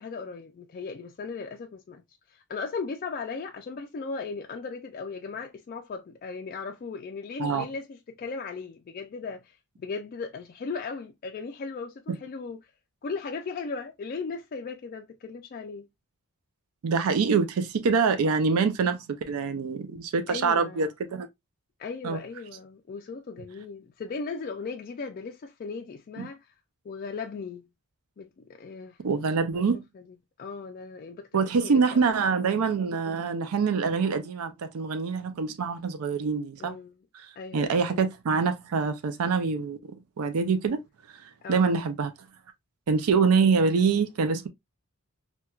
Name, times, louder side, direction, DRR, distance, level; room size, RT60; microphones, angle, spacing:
voice 1, 0.0-2.0 2.3-12.7 13.0-15.9 20.3-20.9 21.8-26.5 26.8-27.7 28.2-29.0 29.6-29.7 29.9-30.0 30.4-32.0 32.3-32.4 36.6-37.0 37.4-38.0 41.4-41.8 43.4-43.8, left 4 dB, 40° left, 0.3 m, -37 dB
voice 2, 16.8-21.3 22.0-22.2 26.2-26.3 29.0-29.8 31.3-36.8 37.1-39.9 40.2-40.8 41.5-42.1 42.9-44.5, right 5 dB, 75° right, 0.4 m, -25 dB
4.4 x 2.2 x 2.2 m
head